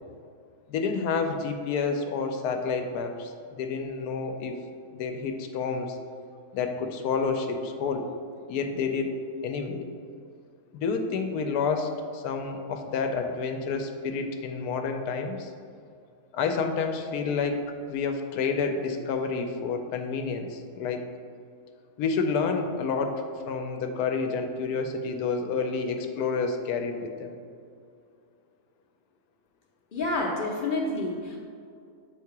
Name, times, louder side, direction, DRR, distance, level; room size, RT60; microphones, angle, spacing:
voice 1, 0.7-3.3 3.6-4.6 4.9-6.0 6.5-8.1 8.5-9.9 10.7-15.5 16.3-21.0 22.0-27.4, left 5 dB, 80° left, 5 dB, 1.1 m, -29 dB
voice 2, 29.9-31.4, left 2 dB, 45° left, -2 dB, 0.7 m, -28 dB
8.3 x 2.8 x 4.6 m, 2.3 s
omnidirectional pair, 1.7 m